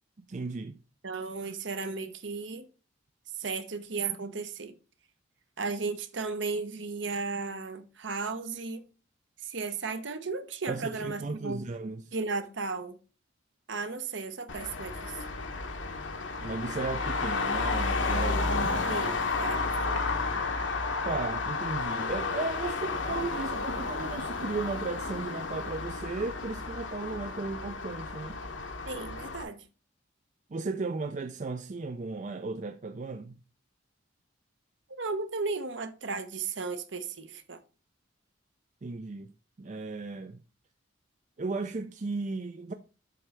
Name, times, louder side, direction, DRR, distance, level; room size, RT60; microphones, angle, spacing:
voice 1, 0.2-0.8 10.7-12.1 16.4-19.0 21.0-28.4 30.5-33.4 38.8-39.3 39.6-40.4 41.4-42.7, right 3 dB, 40° right, 0.4 m, -35 dB
voice 2, 1.0-2.7 3.3-4.7 5.6-8.9 9.4-11.7 12.1-13.0 13.7-15.2 18.9-19.9 28.9-29.6 35.0-37.6, right 4 dB, 65° right, 1.0 m, -35 dB
Traffic noise roadway noise, 14.5-29.4, left 3 dB, 70° left, 1.1 m, -32 dB
7.7 x 3.3 x 6.2 m
head